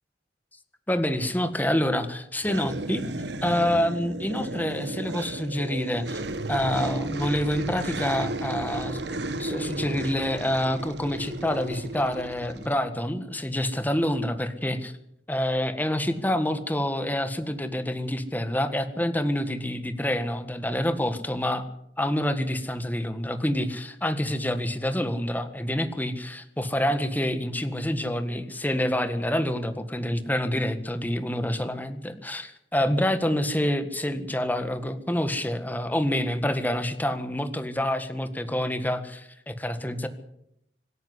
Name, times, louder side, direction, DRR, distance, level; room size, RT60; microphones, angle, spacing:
voice 1, 0.9-3.0 3.4-6.2 6.5-14.9 15.3-21.7 22.0-40.1, left 1 dB, 10° left, 9 dB, 1.7 m, -27 dB
sound 1, 2.4-12.8, right 2 dB, 75° right, 1.5 m, -34 dB
25.5 x 10.5 x 9.7 m, 0.76 s
head